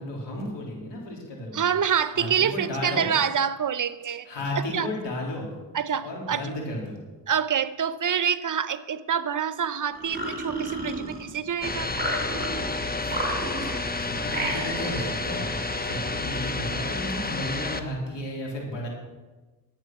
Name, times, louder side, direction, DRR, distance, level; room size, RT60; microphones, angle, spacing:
voice 1, 0.0-1.8 2.1-3.1 4.2-5.5 6.0-7.0 13.0-13.3 13.6-13.7 14.0-15.5 15.8-18.9, left 1 dB, 85° left, -1 dB, 3.5 m, -33 dB
voice 2, 1.5-4.3 4.7-4.9 5.7-6.4 7.3-11.9, right 8 dB, 50° right, 14 dB, 0.8 m, -26 dB
sound 1, 9.9-11.5 11.9-12.7 13.1-13.9 14.3-15.2, right 2 dB, 20° right, 3.4 m, -32 dB
sound 2, 11.6-17.8, left 3 dB, 20° left, 1.0 m, -30 dB
11.5 x 8.8 x 6.0 m, 1.2 s
cardioid pair, 60°, 41 cm